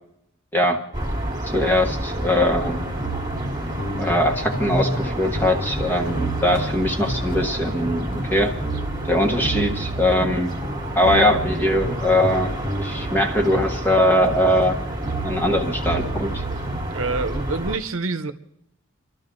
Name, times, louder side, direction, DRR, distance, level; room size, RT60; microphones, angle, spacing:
sound 1, 0.9-17.8, right 1 dB, 20° right, 1.6 m, -30 dB
voice 1, 1.5-2.8 4.0-8.5 9.0-10.5 11.0-12.5 12.8-14.8 15.2-16.4, left 1 dB, 10° left, 3 dB, 1.3 m, -21 dB
sound 2, 2.6-16.8, right 1 dB, 35° left, 1.9 m, -31 dB
voice 2, 16.9-18.3, right 3 dB, 70° right, 9 dB, 0.9 m, -27 dB
29.5 x 12.5 x 3.9 m, 0.81 s
head